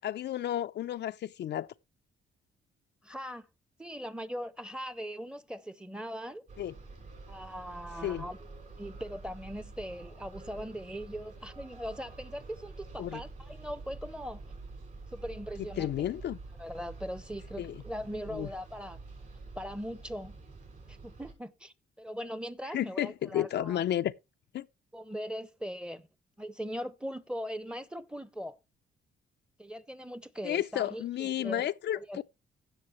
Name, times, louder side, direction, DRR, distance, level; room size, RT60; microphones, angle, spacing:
voice 1, 0.0-1.7 6.6-6.7 8.0-8.3 13.0-13.2 15.6-16.4 17.6-17.8 18.3-18.5 22.7-24.1 24.5-24.7 30.4-32.2, left 12 dB, 60° left, 0.5 m, -32 dB
voice 2, 3.0-3.5 3.8-6.4 7.3-8.4 8.8-14.4 15.1-16.1 16.6-19.0 19.5-20.4 20.9-23.8 24.9-26.1 26.4-28.6 29.6-31.7 31.9-32.2, equal, 5° right, 0.9 m, -40 dB
sound 1, 6.5-21.3, right 3 dB, 45° right, 6.1 m, -47 dB
16.0 x 6.6 x 3.1 m
cardioid pair, 90°, 20 cm